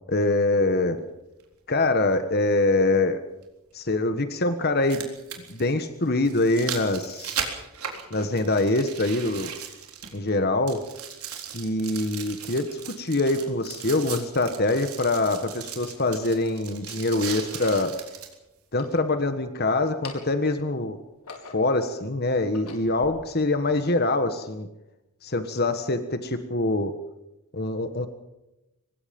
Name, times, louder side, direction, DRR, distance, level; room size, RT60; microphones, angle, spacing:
voice 1, 0.1-1.0 1.7-3.2 3.7-5.1 5.5-7.4 8.1-9.6 10.1-10.8 11.5-17.9 18.7-21.0 21.5-24.7 25.2-26.9 27.5-28.1, left 2 dB, 45° left, 9 dB, 1.5 m, -24 dB
sound 1, 1.4-1.5 3.4-3.5 4.6-10.4 10.7-18.3 18.9-19.0, right 8 dB, 85° right, 3.9 m, -37 dB
sound 2, 16.3-16.6 17.4-17.9 18.6-19.5 19.9-20.5 21.0-21.8 22.3-23.1, left 4 dB, 85° left, 4.5 m, -45 dB
24.5 x 20.5 x 5.4 m, 0.93 s
head